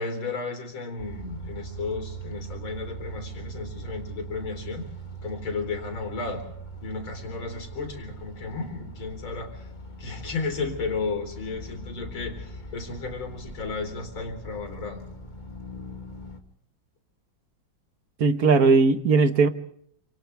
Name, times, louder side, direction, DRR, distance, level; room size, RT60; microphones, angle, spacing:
voice 1, 0.0-4.9 5.2-6.4 6.8-9.7 10.0-15.0, left 4 dB, 85° left, 6 dB, 4.6 m, -33 dB
sound 1, 1.0-16.4, right 2 dB, 25° left, 2.3 m, -41 dB
voice 2, 18.2-19.5, right 4 dB, 50° right, 10 dB, 1.5 m, -18 dB
28.0 x 27.5 x 3.4 m, 0.66 s
omnidirectional pair, 2.2 m